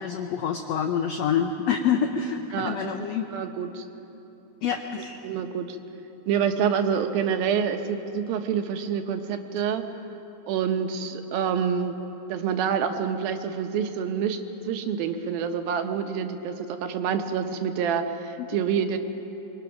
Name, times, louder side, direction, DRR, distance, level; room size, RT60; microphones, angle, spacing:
voice 1, 0.0-3.2 4.6-5.2, left 7 dB, 85° left, 5 dB, 1.4 m, -27 dB
voice 2, 2.5-2.9 3.3-3.8 5.2-5.8 6.3-9.8 10.5-12.0 12.3-14.4 14.6-19.0, right 7 dB, 85° right, 6 dB, 2.9 m, -27 dB
24.5 x 23.0 x 6.0 m, 3.0 s
omnidirectional pair, 4.1 m